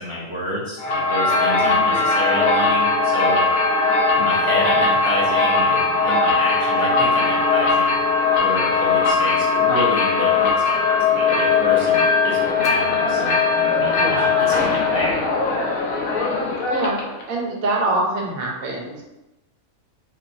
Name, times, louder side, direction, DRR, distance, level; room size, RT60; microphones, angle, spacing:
voice 1, 0.0-3.4 4.2-8.0 8.4-13.4 13.8-15.3, equal, 30° right, -7 dB, 0.6 m, -29 dB
sound 1, 0.8-17.2, left 4 dB, 90° left, 1.1 m, -19 dB
voice 2, 1.6-2.1 13.9-14.3 16.0-17.0 17.3-19.0, right 2 dB, 80° right, -1 dB, 1.2 m, -26 dB
4.1 x 2.9 x 2.6 m, 0.95 s
omnidirectional pair, 1.5 m